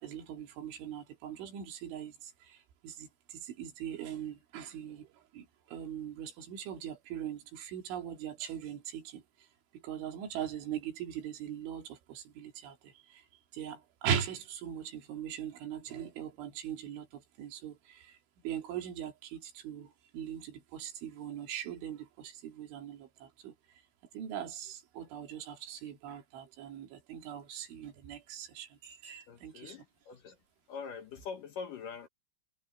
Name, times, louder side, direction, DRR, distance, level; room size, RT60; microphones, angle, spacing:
voice 1, 0.0-2.6 2.8-9.2 9.8-13.2 13.5-18.2 18.4-23.5 24.1-29.8, right 9 dB, 70° right, 4.7 m, -40 dB
voice 2, 29.3-30.4 30.7-32.1, left 6 dB, 70° left, 2.0 m, -43 dB
omnidirectional pair, 5.7 m